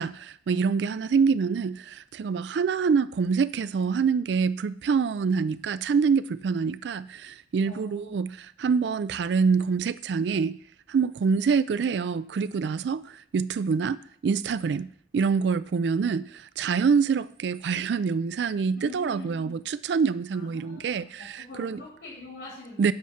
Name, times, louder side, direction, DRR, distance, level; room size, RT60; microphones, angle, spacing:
voice 1, 0.0-10.6 10.9-21.8 22.8-22.9, right 5 dB, 75° right, 0.3 m, -26 dB
voice 2, 7.6-8.2 18.7-19.5 20.3-22.9, left 2 dB, 90° left, 3.7 m, -44 dB
8.6 x 5.6 x 7.3 m
head